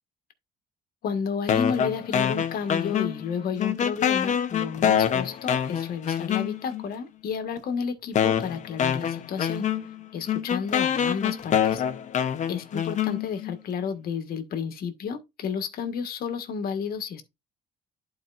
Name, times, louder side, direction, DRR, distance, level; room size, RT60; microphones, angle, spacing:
voice 1, 1.0-9.7 10.1-11.8 12.5-17.2, left 6 dB, 60° left, 1.6 m, -31 dB
sound 1, 1.5-3.3 3.6-6.8 7.6-7.7 8.2-13.6, left 8 dB, 45° left, 0.9 m, -25 dB
11.5 x 4.4 x 2.5 m
cardioid pair, 110°, 17 cm